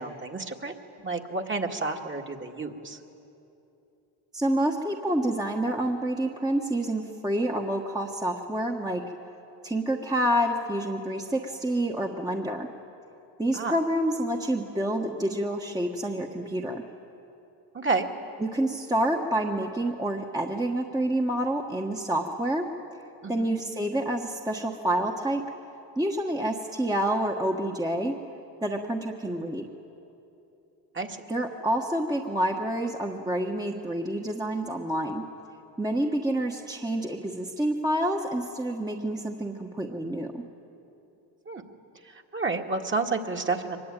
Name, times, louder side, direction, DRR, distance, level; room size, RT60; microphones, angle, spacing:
voice 1, 0.0-3.0 13.5-13.7 17.7-18.1 23.2-23.5 30.9-31.2 41.5-41.6 42.1-43.8, right 3 dB, 25° right, 2 dB, 2.1 m, -30 dB
voice 2, 4.3-9.0 9.6-12.7 13.4-16.8 18.4-22.7 23.3-25.4 26.0-28.1 28.6-29.7 31.3-35.2 35.8-40.4, right 1 dB, 10° right, 1 dB, 1.4 m, -28 dB
23.5 x 21.0 x 9.1 m, 2.9 s
cardioid pair, 90°, 44 cm